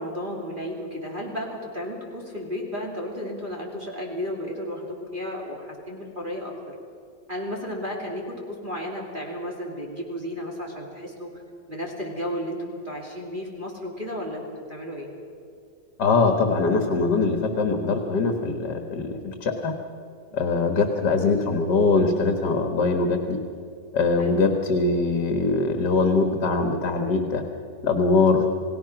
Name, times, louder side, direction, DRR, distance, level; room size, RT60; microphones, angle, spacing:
voice 1, 0.0-6.7 7.3-11.3 11.7-14.4 14.7-15.1 20.3-20.6 24.2-24.5, equal, 25° right, -2 dB, 2.8 m, -33 dB
voice 2, 16.0-19.7 20.3-23.4 23.9-27.4 27.8-28.5, left 3 dB, 65° left, 4 dB, 2.1 m, -22 dB
29.0 x 18.0 x 6.0 m, 2.5 s
omnidirectional pair, 1.9 m